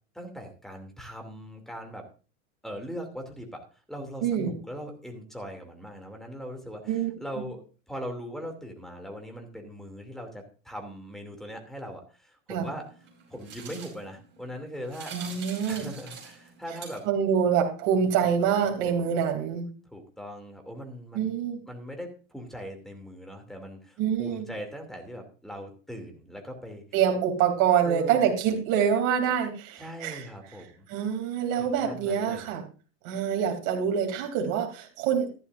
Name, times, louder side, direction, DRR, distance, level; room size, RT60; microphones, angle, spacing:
voice 1, 0.1-2.1 2.6-7.6 7.9-12.9 13.3-15.1 15.7-17.1 18.8-19.2 19.9-21.3 21.7-26.8 27.8-28.2 29.8-30.9 31.6-32.5, equal, ahead, 3 dB, 2.7 m, -40 dB
voice 2, 4.2-4.5 6.9-7.1 7.4-7.5 12.5-12.7 15.1-15.8 17.0-19.7 21.1-21.6 24.0-24.5 26.9-30.3 30.9-32.6 33.0-35.3, right 8 dB, 55° right, 2 dB, 3.2 m, -26 dB
sound 1, 12.6-17.3, right 6 dB, 30° right, 5.5 m, -45 dB
14.0 x 12.0 x 2.6 m, 0.35 s
supercardioid pair, 125°, 38 cm